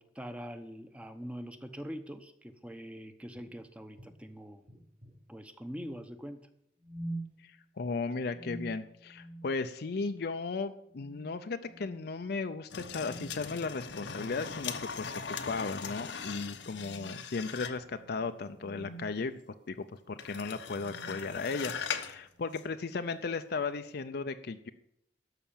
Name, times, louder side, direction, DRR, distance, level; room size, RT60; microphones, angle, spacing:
voice 1, 0.0-4.6 5.3-6.5, equal, 5° right, 9 dB, 0.8 m, -43 dB
sound 1, 3.3-3.5 4.0-4.1 4.7-5.2 6.8-7.3 8.3-9.5 9.9-10.2 10.9-11.3 11.6-12.0 12.9-13.4 14.6-15.1 15.5-15.7 16.5-19.1 20.0-20.3 20.7-21.7, right 1 dB, 45° right, 5.1 m, -46 dB
voice 2, 7.4-19.4 19.7-24.7, left 4 dB, 60° left, 8 dB, 0.5 m, -36 dB
sound 2, 12.7-17.9 20.2-22.2 22.5-22.6, left 6 dB, 90° left, 1.0 m, -40 dB
12.5 x 5.7 x 8.7 m, 0.76 s
head